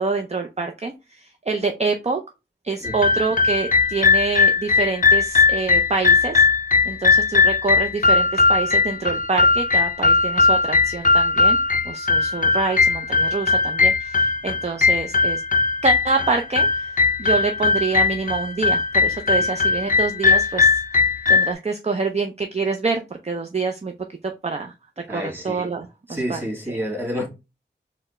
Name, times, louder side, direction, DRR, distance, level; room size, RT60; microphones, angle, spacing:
voice 1, 0.0-2.2 2.6-6.4 6.9-11.6 11.8-15.4 15.8-16.9 17.2-20.8 21.3-23.9 24.4-24.7 25.1-26.4 26.7-26.8, right 4 dB, 35° right, 0.5 m, -26 dB
sound 1, 2.8-21.5, left 4 dB, 45° left, 0.4 m, -19 dB
voice 2, 25.1-25.7 26.1-27.3, equal, 10° right, 1.9 m, -29 dB
4.1 x 2.1 x 4.1 m
wide cardioid pair, 40°, 19 cm